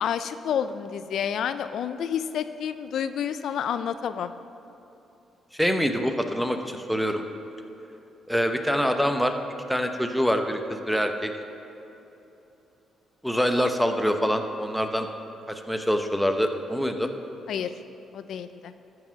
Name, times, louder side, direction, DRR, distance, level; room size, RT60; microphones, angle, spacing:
voice 1, 0.0-4.3 17.5-17.7 18.1-18.7, left 8 dB, 70° left, 11 dB, 0.3 m, -29 dB
voice 2, 5.5-7.2 8.3-9.3 9.7-11.3 13.2-15.1 15.5-17.1, equal, ahead, 5 dB, 0.7 m, -25 dB
14.0 x 4.8 x 5.7 m, 3.0 s
cardioid pair, 95°, 0 cm